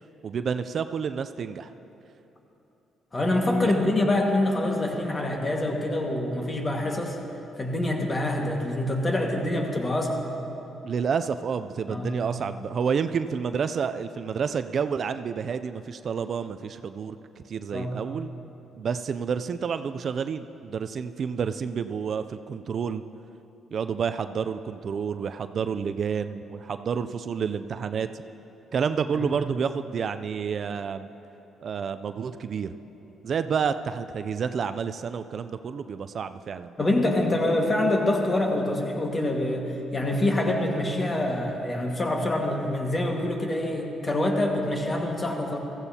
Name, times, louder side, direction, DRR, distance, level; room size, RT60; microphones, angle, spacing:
voice 1, 0.2-1.7 3.6-3.7 10.8-18.3 18.8-23.0 23.7-28.1 28.7-31.1 31.6-32.7 33.2-36.7, right 6 dB, 55° right, 10 dB, 0.3 m, -29 dB
voice 2, 3.1-7.2 7.6-10.2 11.9-12.1 17.7-17.9 29.1-29.4 36.8-45.6, left 1 dB, 30° left, 1 dB, 1.6 m, -25 dB
15.0 x 14.5 x 2.8 m, 3.0 s
cardioid pair, 90°, 0 cm